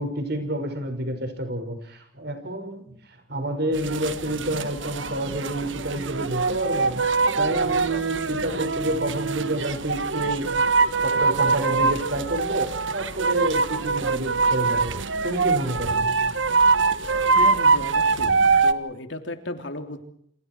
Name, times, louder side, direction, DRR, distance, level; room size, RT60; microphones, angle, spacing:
voice 1, 0.0-7.0 7.4-10.7 11.0-14.9 15.2-16.0, right 1 dB, 55° right, 7 dB, 5.9 m, -29 dB
sound 1, 3.7-18.7, right 4 dB, 75° right, 1.5 m, -23 dB
voice 2, 17.3-20.0, left 1 dB, 65° left, 7 dB, 3.3 m, -34 dB
28.5 x 28.0 x 4.7 m, 0.68 s
head